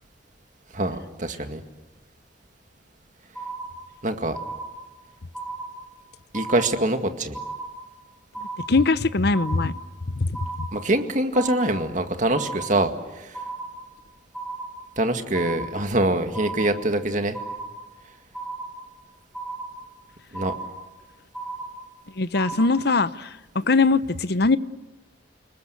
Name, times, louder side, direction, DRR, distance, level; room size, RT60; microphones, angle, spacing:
voice 1, 0.7-1.6 4.0-4.4 6.3-7.4 10.7-12.9 13.2-13.4 15.0-17.4 20.3-20.6, right 1 dB, 45° right, 7 dB, 2.0 m, -24 dB
sound 1, 3.3-4.0 4.3-5.0 5.3-6.0 6.3-7.0 7.3-8.0 8.3-9.0 9.3-10.0 10.3-11.0 11.3-12.0 12.3-13.0 13.3-14.0 14.3-15.0 15.3-16.0 16.3-17.0 17.3-18.0 18.3-19.0 19.3-20.0 20.3-21.0 21.3-22.0 22.3-23.0, right 3 dB, ahead, 7.5 m, -35 dB
voice 2, 8.7-9.7 10.2-10.7 22.2-24.6, left 3 dB, 60° left, 15 dB, 0.9 m, -21 dB
29.5 x 20.0 x 8.1 m, 1.1 s
head